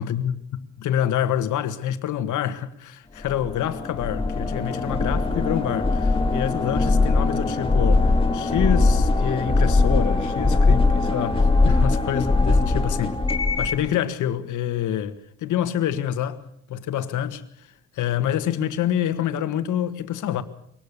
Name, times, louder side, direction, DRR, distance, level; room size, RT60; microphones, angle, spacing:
voice 1, 0.0-13.2 13.6-16.4 16.7-17.7 17.9-20.4, left 10 dB, 80° left, 1.7 m, -27 dB
sound 1, 3.3-13.9, left 3 dB, 15° left, 2.1 m, -21 dB
23.0 x 19.0 x 6.8 m
cardioid pair, 90°, 30 cm